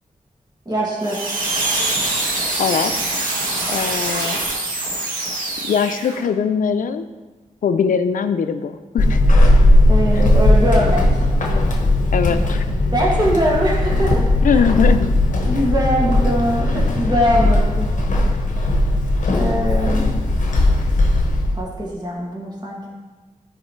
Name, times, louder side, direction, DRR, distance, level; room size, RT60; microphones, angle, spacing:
voice 1, 0.7-1.2 9.9-11.3 12.9-14.6 15.4-17.9 19.4-20.1 21.5-22.9, equal, 30° right, -4 dB, 2.1 m, -22 dB
sound 1, 1.0-6.2, right 2 dB, 80° right, 1.8 m, -24 dB
voice 2, 2.6-2.9 3.7-4.4 5.6-7.0 7.6-9.2 10.1-10.2 12.1-12.6 14.4-15.1, left 6 dB, 85° left, 8 dB, 0.5 m, -21 dB
Walk footsteps / Squeak, 9.0-21.6, left 1 dB, 70° left, 1.1 m, -17 dB
14.0 x 4.8 x 3.1 m, 1.2 s
wide cardioid pair, 75°, 14 cm